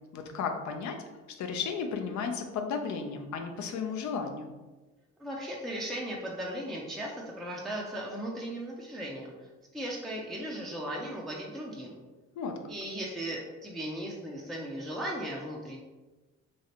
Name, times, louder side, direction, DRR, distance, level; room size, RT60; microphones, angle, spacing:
voice 1, 0.1-1.0 1.4-4.5 12.4-12.6, left 5 dB, 70° left, 4 dB, 0.5 m, -34 dB
voice 2, 5.2-9.3 9.7-12.0 12.7-15.8, right 1 dB, ahead, -3 dB, 0.4 m, -37 dB
3.0 x 2.4 x 2.8 m, 1.2 s
cardioid pair, 90°, 30 cm